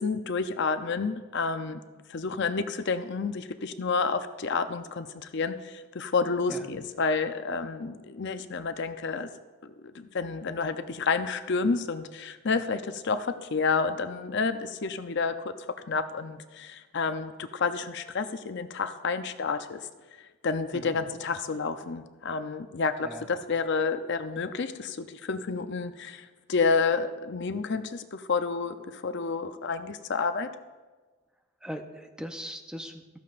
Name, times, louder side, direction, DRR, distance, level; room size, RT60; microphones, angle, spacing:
voice 1, 0.0-1.8 2.1-5.1 5.3-9.3 9.6-15.5 15.9-19.8 20.4-30.5, left 4 dB, 55° left, 9 dB, 0.6 m, -30 dB
voice 2, 31.6-33.2, equal, 5° right, 5 dB, 0.6 m, -39 dB
14.0 x 14.0 x 2.5 m, 1.3 s
head